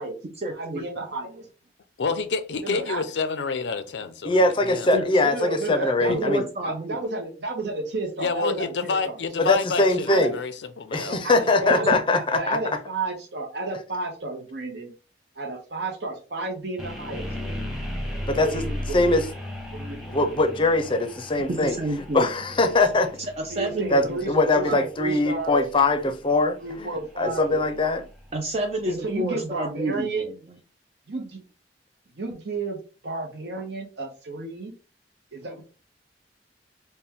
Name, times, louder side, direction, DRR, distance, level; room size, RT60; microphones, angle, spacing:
voice 1, 0.0-0.8 4.9-5.0 6.1-7.0 21.5-22.3 23.4-23.9 24.3-24.8 28.3-30.3, right 1 dB, 35° right, 0.5 m, -29 dB
voice 2, 0.5-1.5 2.6-3.0 5.2-9.2 10.1-10.3 11.1-14.9 15.4-17.3 18.4-19.1 19.7-20.2 23.5-25.6 26.6-27.6 28.9-30.2 31.1-31.4 32.2-32.8 33.0-34.7 35.3-35.6, right 3 dB, 70° right, 0.8 m, -32 dB
voice 3, 2.0-5.1 8.2-11.1, left 4 dB, 80° left, 0.5 m, -29 dB
voice 4, 4.2-6.4 9.4-10.4 10.9-12.6 18.3-18.6 18.9-19.3 20.1-21.8 22.1-23.1 23.9-26.9 27.2-28.0, left 2 dB, 30° left, 0.5 m, -22 dB
sound 1, 16.8-28.7, left 1 dB, ahead, 0.9 m, -37 dB
4.3 x 2.2 x 3.5 m
head